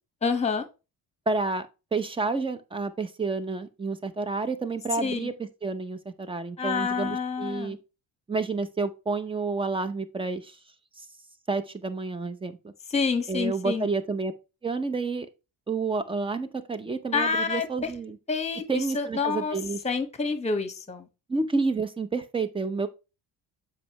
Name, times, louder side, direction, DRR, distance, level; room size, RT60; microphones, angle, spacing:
voice 1, 0.2-0.6 5.0-5.3 6.6-7.8 12.9-13.9 17.1-17.9 18.3-18.6 18.9-19.6 19.8-21.1, left 5 dB, 20° left, 1.3 m, -28 dB
voice 2, 1.3-1.7 1.9-7.8 8.3-10.6 11.0-11.1 11.5-12.6 13.3-14.3 14.6-15.3 15.7-18.2 18.7-19.8 21.3-22.9, right 3 dB, 15° right, 0.7 m, -29 dB
7.6 x 5.4 x 3.0 m
cardioid pair, 130°, 35 cm